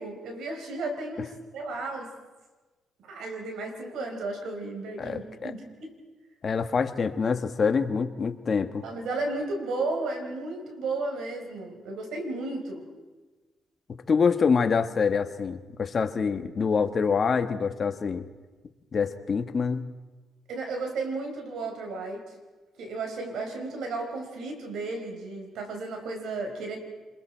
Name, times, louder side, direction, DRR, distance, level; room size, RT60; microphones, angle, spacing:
voice 1, 0.0-2.1 3.1-5.9 8.8-12.9 20.5-22.2 22.8-26.8, right 3 dB, 75° right, 4 dB, 4.4 m, -34 dB
voice 2, 5.0-5.5 6.4-8.8 14.1-18.3 18.9-19.8, left 5 dB, 45° left, 8 dB, 1.4 m, -26 dB
27.5 x 22.0 x 4.5 m, 1.3 s
cardioid pair, 90°, 0 cm